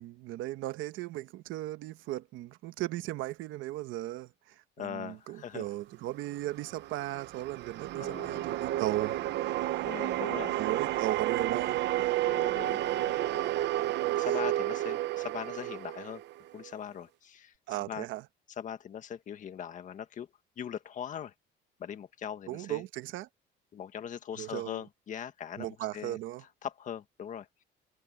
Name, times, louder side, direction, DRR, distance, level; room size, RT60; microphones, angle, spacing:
voice 1, 0.0-9.2 9.4-9.8 10.6-12.1 17.7-18.2 22.5-23.3 24.4-24.8 25.6-26.4, right 15 dB, 75° right, 1.2 m, -37 dB
voice 2, 4.8-5.7 8.0-8.5 9.8-10.8 12.2-13.5 14.0-16.2 16.5-17.5 17.8-18.0 18.6-20.3 20.6-21.3 21.8-22.8 23.7-26.2 26.6-27.6, left 9 dB, 40° left, 1.7 m, -41 dB
sound 1, 6.3-16.7, right 15 dB, 60° right, 0.7 m, -31 dB
cardioid pair, 160°, 20 cm